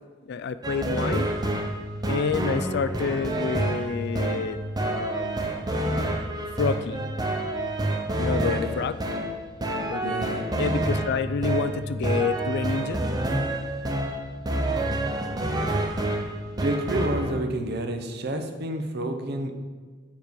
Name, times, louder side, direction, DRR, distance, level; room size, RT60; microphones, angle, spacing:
voice 1, 0.2-1.3 2.0-5.5 6.6-7.0 8.2-9.0 9.9-10.2 10.6-13.1, left 5 dB, 60° left, 13 dB, 0.3 m, -28 dB
sound 1, 0.6-17.4, right 1 dB, 20° right, 0.6 m, -28 dB
voice 2, 8.4-8.8 10.0-10.4 16.6-19.5, right 1 dB, 55° right, 6 dB, 0.8 m, -29 dB
7.3 x 5.3 x 4.6 m, 1.5 s
head